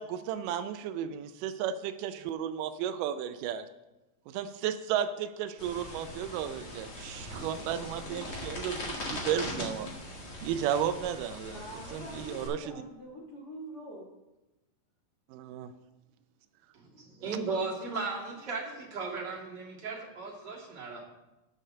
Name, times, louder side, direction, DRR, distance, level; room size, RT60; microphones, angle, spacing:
voice 1, 0.0-3.7 4.3-9.9 10.4-11.6 11.9-12.8 15.3-15.7, right 9 dB, 90° right, 9 dB, 1.9 m, -34 dB
sound 1, 5.6-12.5, left 1 dB, 35° left, 1.7 m, -40 dB
voice 2, 11.5-14.1, equal, 65° left, -4 dB, 0.9 m, -45 dB
voice 3, 16.7-21.0, right 4 dB, 35° right, -4 dB, 2.0 m, -36 dB
8.7 x 6.6 x 6.5 m, 1.0 s
omnidirectional pair, 4.4 m